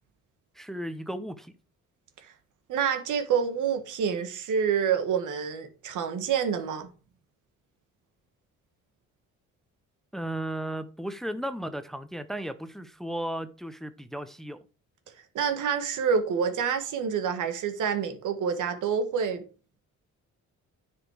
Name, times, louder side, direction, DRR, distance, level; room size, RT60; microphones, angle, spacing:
voice 1, 0.6-1.5 10.1-14.6, right 1 dB, ahead, 0.8 m, -35 dB
voice 2, 2.7-6.9 15.3-19.4, right 7 dB, 80° right, 1.6 m, -27 dB
9.7 x 5.2 x 4.8 m
cardioid pair, 90°, 30 cm